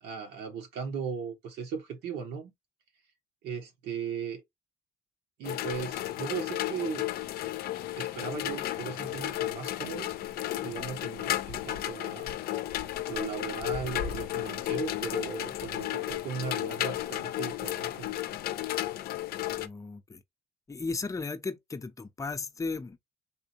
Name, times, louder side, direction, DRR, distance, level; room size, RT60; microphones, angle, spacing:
voice 1, 0.0-2.5 3.4-4.4 5.4-7.1 8.0-10.1 10.5-12.3 13.1-18.1, right 6 dB, 80° right, 1.5 m, -37 dB
sound 1, 5.4-19.7, left 14 dB, 65° left, 0.5 m, -33 dB
voice 2, 19.5-20.2 20.7-23.0, left 4 dB, 20° left, 0.7 m, -35 dB
3.8 x 3.2 x 2.8 m
cardioid pair, 110°, 17 cm